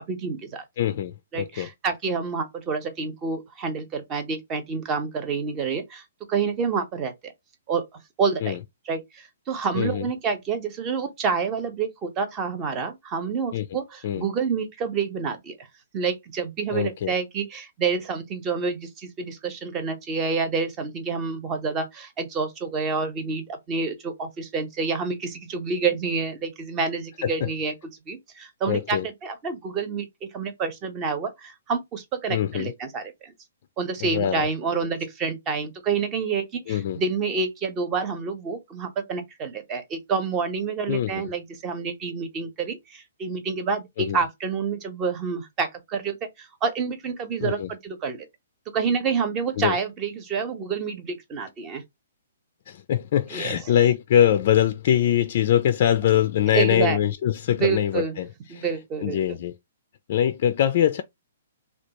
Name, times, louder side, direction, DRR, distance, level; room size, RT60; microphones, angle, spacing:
voice 1, 0.1-0.6 1.3-6.0 6.3-7.3 7.7-7.9 8.2-8.6 8.9-15.5 15.9-27.7 28.1-33.3 33.8-48.3 48.7-51.8 53.3-53.6 56.5-57.0 57.5-58.1 58.5-59.2, right 5 dB, 25° right, 0.8 m, -28 dB
voice 2, 0.8-1.7 8.4-8.6 9.7-10.1 13.5-13.7 14.0-14.2 16.7-17.1 27.2-27.5 28.7-29.1 32.3-32.7 34.0-34.5 36.7-37.0 40.9-41.3 44.0-44.2 47.4-47.7 49.6-49.7 52.7-58.7 59.0-59.5 60.1-61.0, left 10 dB, 50° left, 0.3 m, -23 dB
3.3 x 2.3 x 2.9 m
hypercardioid pair, 130°, 0 cm